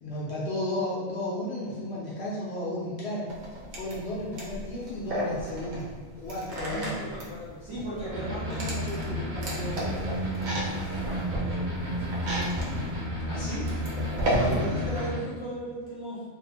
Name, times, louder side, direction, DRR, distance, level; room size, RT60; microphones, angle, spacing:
voice 1, 0.0-3.3 3.7-5.9 6.2-6.9 13.2-13.7, left 1 dB, 65° left, -6 dB, 0.7 m, -33 dB
sound 1, 3.3-15.0, right 1 dB, 90° right, 1.1 m, -34 dB
voice 2, 6.7-12.9 14.3-16.2, right 1 dB, 35° right, -11 dB, 0.5 m, -38 dB
sound 2, 8.1-15.2, equal, 60° right, 1.0 m, -32 dB
2.7 x 2.1 x 2.6 m, 1.5 s
omnidirectional pair, 1.4 m